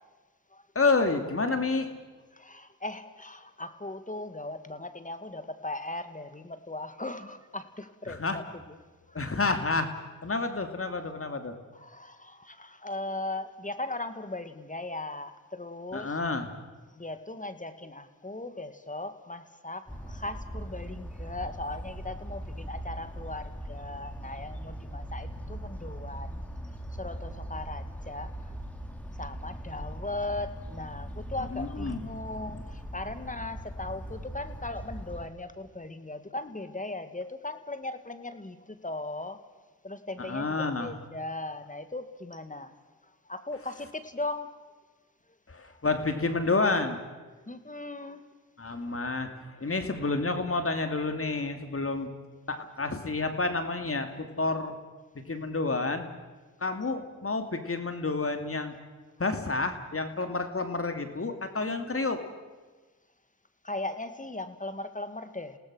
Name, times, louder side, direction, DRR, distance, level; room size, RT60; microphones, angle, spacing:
voice 1, 0.7-1.9 8.1-8.4 9.1-9.9 10.2-11.5 15.9-16.5 31.5-32.0 40.3-40.9 45.5-47.0 48.6-52.1 52.5-54.8 55.1-56.1 56.6-58.7 59.2-62.2, left 3 dB, 35° left, 7 dB, 2.7 m, -29 dB
voice 2, 2.3-8.6 9.1-9.2 11.7-16.1 16.9-26.4 27.0-28.3 29.2-39.4 39.8-42.7 43.3-44.6 47.5-48.2 63.6-65.6, left 2 dB, 20° left, 10 dB, 2.1 m, -38 dB
sound 1, 19.9-35.3, equal, 5° left, 3.1 m, -40 dB
28.5 x 18.0 x 6.4 m, 1.3 s
supercardioid pair, 45°, 39 cm